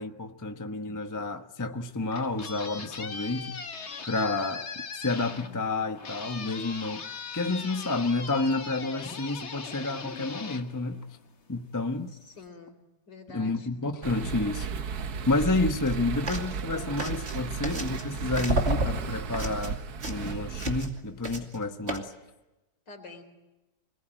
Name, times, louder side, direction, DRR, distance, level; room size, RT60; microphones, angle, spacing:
voice 1, 0.0-3.6 4.1-4.6 5.0-11.0 11.5-12.1 13.3-14.7 15.3-22.1, left 2 dB, 10° left, 1.0 m, -30 dB
sound 1, 1.9-11.5, left 5 dB, 40° left, 1.6 m, -40 dB
voice 2, 12.1-12.8 13.1-13.7 22.9-23.2, left 3 dB, 65° left, 4.3 m, -47 dB
sound 2, 14.0-20.9, right 5 dB, 60° right, 1.6 m, -35 dB
sound 3, 15.7-15.9 16.3-16.6 17.0-18.1 18.3-21.0 21.2-21.6 21.9-22.0, right 2 dB, 35° right, 2.9 m, -31 dB
26.5 x 20.5 x 9.1 m
omnidirectional pair, 2.0 m